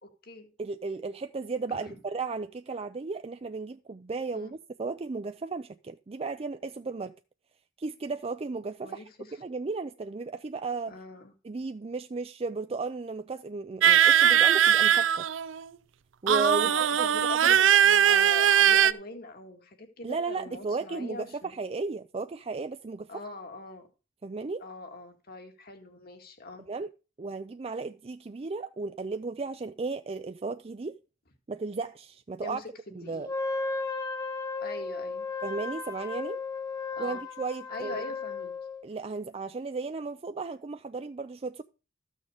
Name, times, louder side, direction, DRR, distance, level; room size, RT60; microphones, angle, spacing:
voice 1, 0.0-0.5 1.7-2.0 4.3-4.5 8.8-9.3 10.9-11.3 16.6-21.5 23.1-23.8 24.6-26.7 32.4-33.3 34.6-35.3 37.0-37.2 37.7-38.5, left 2 dB, 55° left, 2.1 m, -42 dB
voice 2, 0.6-7.1 7.8-9.0 9.4-11.0 11.4-15.3 16.2-17.5 20.0-23.2 24.2-24.6 26.7-26.9 27.2-30.9 31.5-32.6 32.9-33.3 35.4-36.4 37.0-38.0 38.8-41.6, right 4 dB, 30° right, 0.4 m, -34 dB
sound 1, 13.8-15.6 16.3-18.9, right 9 dB, 85° right, 0.5 m, -20 dB
Wind instrument woodwind instrument, 33.2-38.9, left 4 dB, 20° left, 1.3 m, -35 dB
14.0 x 6.4 x 5.0 m
head